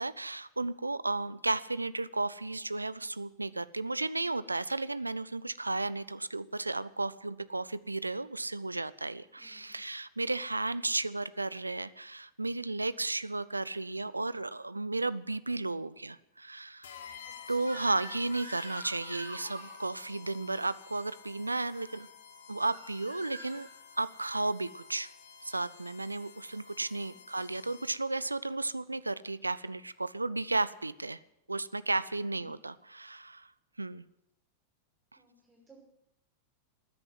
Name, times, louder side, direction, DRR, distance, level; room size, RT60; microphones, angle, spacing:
voice 1, 0.0-16.9 17.5-22.1 22.5-23.7 24.0-25.1 25.4-31.2 31.5-33.5 33.8-34.0, right 2 dB, 80° right, 17 dB, 0.4 m, -34 dB
voice 2, 9.4-9.8 17.2-17.7 26.9-27.5 32.3-32.6 35.2-35.8, right 1 dB, 15° right, -1 dB, 5.8 m, -61 dB
sound 1, 16.8-28.2, left 7 dB, 60° left, 1.3 m, -52 dB
Crying sobbing / Screech, 17.6-19.8 21.7-22.0 22.7-23.7, right 1 dB, 90° left, 2.3 m, -45 dB
14.0 x 9.8 x 7.7 m, 0.85 s
figure-of-eight pair, 90°, 0 cm